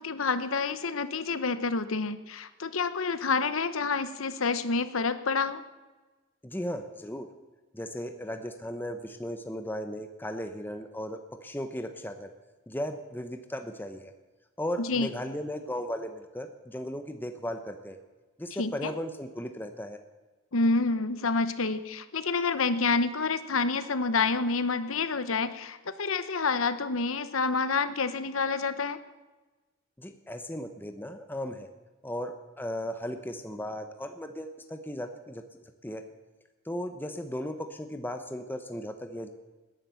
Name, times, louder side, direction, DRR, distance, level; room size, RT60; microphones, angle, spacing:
voice 1, 0.0-5.6 14.8-15.1 18.6-18.9 20.5-29.0, left 4 dB, 80° left, 12 dB, 1.0 m, -28 dB
voice 2, 6.4-7.3 7.7-12.3 12.7-14.1 14.6-18.0 18.4-20.0 30.0-31.7 32.0-35.4 35.8-36.0 36.7-39.3, equal, 10° left, 7 dB, 0.9 m, -36 dB
18.5 x 10.5 x 7.0 m, 1.2 s
head